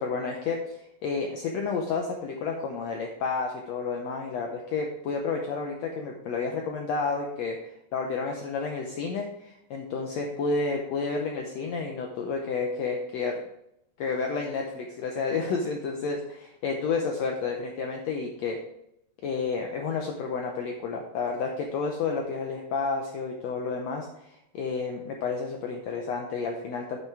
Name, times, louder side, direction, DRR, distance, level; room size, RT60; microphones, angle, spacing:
voice 1, 0.0-7.6 7.9-13.4 14.0-18.6 19.2-27.0, left 4 dB, 75° left, 2 dB, 1.6 m, -30 dB
8.9 x 5.9 x 4.6 m, 0.81 s
omnidirectional pair, 3.9 m